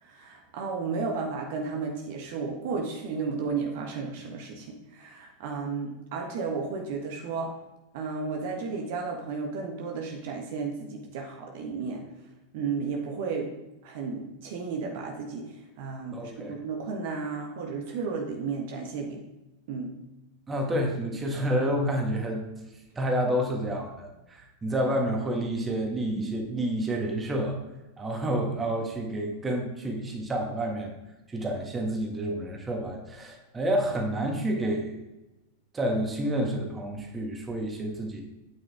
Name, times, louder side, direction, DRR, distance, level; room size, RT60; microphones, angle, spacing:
voice 1, 0.0-7.5 7.9-12.0 12.5-13.5 13.8-19.2 19.7-19.9 21.3-21.4, right 4 dB, 50° right, 1 dB, 1.4 m, -33 dB
voice 2, 16.1-16.6 20.5-22.5 22.9-27.6 28.0-30.9 31.3-35.0 35.7-38.2, right 1 dB, 15° right, 1 dB, 1.8 m, -29 dB
9.0 x 7.8 x 3.6 m, 1.0 s
figure-of-eight pair, 90°, 0 cm